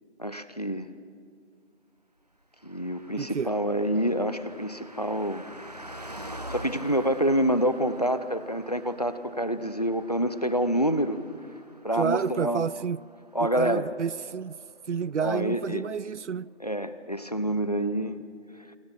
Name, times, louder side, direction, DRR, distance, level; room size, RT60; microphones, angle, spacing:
voice 1, 0.2-0.9 2.6-5.4 6.3-11.2 11.8-12.7 13.3-13.9 15.2-15.8 16.6-18.2, equal, 35° left, 0.8 m, -27 dB
Car passing by, 2.6-14.4 14.7-14.8, right 1 dB, 35° right, 1.1 m, -45 dB
voice 2, 3.2-3.5 12.0-13.0 13.4-14.6 14.9-16.5, right 6 dB, 80° right, 0.5 m, -30 dB
26.5 x 24.0 x 6.0 m
figure-of-eight pair, 175°, 35 cm